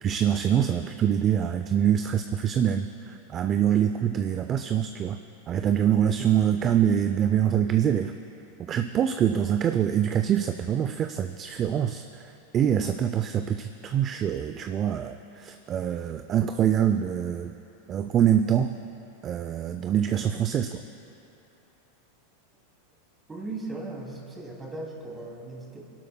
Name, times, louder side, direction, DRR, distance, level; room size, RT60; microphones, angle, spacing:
voice 1, 0.0-5.2 5.5-8.1 8.7-12.0 12.5-17.5 17.9-18.8 19.2-20.8, right 9 dB, 30° right, 8 dB, 0.4 m, -25 dB
voice 2, 23.3-25.8, right 2 dB, 15° right, -2 dB, 2.6 m, -37 dB
30.0 x 12.0 x 2.2 m, 2.9 s
supercardioid pair, 125°, 0 cm